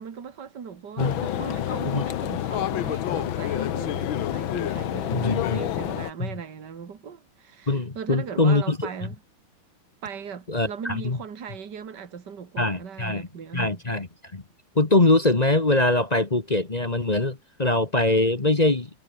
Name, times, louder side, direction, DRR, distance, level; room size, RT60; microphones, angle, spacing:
voice 1, 0.0-9.2 10.0-13.8, right 7 dB, 60° right, 2.7 m, -38 dB
sound 1, 1.0-6.1, left 11 dB, 80° left, 1.8 m, -28 dB
voice 2, 5.1-5.6 6.2-6.3 7.7-8.9 10.5-11.2 12.6-13.3 13.5-14.1 14.3-14.4 14.7-18.9, left 2 dB, 25° left, 1.3 m, -22 dB
omnidirectional pair, 2.2 m